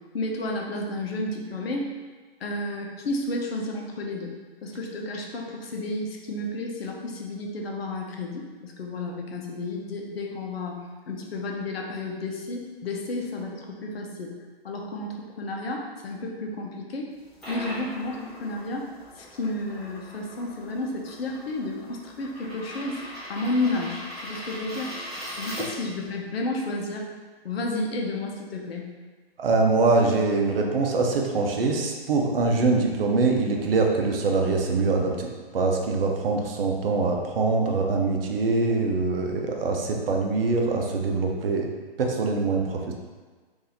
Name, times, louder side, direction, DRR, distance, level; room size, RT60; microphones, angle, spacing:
voice 1, 0.1-1.9 2.4-4.3 4.6-10.8 11.1-14.3 14.6-17.1 17.5-18.9 19.2-23.0 23.3-24.9 25.4-27.1 27.4-28.9, left 2 dB, 70° left, 0 dB, 0.8 m, -31 dB
sound 1, 17.1-26.1, equal, ahead, 0.4 m, -40 dB
voice 2, 29.4-35.3 35.5-41.7 42.0-42.9, right 3 dB, 65° right, 1 dB, 0.7 m, -23 dB
2.7 x 2.7 x 3.9 m, 1.4 s
hypercardioid pair, 145°, 31 cm